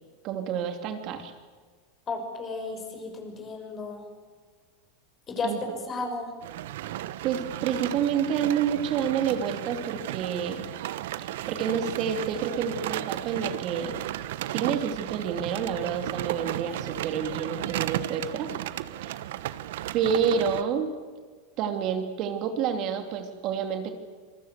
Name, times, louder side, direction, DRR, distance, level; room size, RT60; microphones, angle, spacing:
voice 1, 0.2-1.3 5.4-5.6 7.2-10.7 11.5-13.9 14.5-18.5 19.9-20.9 21.6-23.9, right 7 dB, 50° right, 7 dB, 2.6 m, -28 dB
voice 2, 2.1-4.0 5.3-5.5 5.9-6.3, left 3 dB, 30° left, 4 dB, 6.5 m, -33 dB
sound 1, 6.4-20.6, right 13 dB, 75° right, 1.0 m, -34 dB
26.5 x 20.0 x 8.1 m, 1.5 s
supercardioid pair, 120°, 0 cm